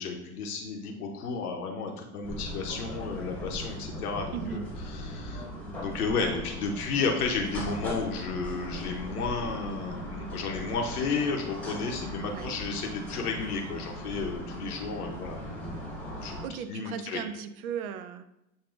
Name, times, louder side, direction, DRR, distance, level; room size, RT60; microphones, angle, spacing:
voice 1, 0.0-4.6 4.9-5.5 5.8-15.9 16.2-17.2, left 4 dB, 85° left, 2 dB, 0.7 m, -32 dB
sound 1, 2.2-16.5, equal, 5° left, 1.1 m, -39 dB
voice 2, 4.3-4.7 12.2-12.6 16.4-18.3, right 8 dB, 70° right, 11 dB, 0.5 m, -37 dB
6.3 x 2.6 x 2.4 m, 0.86 s
hypercardioid pair, 90°, 44 cm